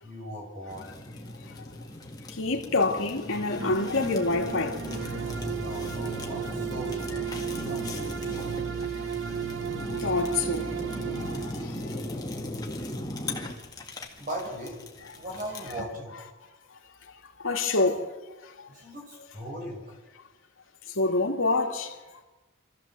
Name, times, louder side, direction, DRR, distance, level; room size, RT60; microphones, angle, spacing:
voice 1, 0.0-0.9 5.2-7.3 7.7-8.6 14.2-14.8 15.1-16.3 18.7-20.0, equal, 40° right, 5.8 m, -39 dB
Fire, 0.7-15.8, left 1 dB, 20° left, 2.0 m, -38 dB
voice 2, 2.4-4.8 5.6-5.7 9.9-10.7 11.2-11.8 17.4-18.1 18.6-18.7 21.0-21.9, left 3 dB, 70° left, 2.4 m, -27 dB
sound 1, 3.6-11.7, right 6 dB, 60° right, 0.9 m, -34 dB
25.5 x 14.5 x 7.7 m
head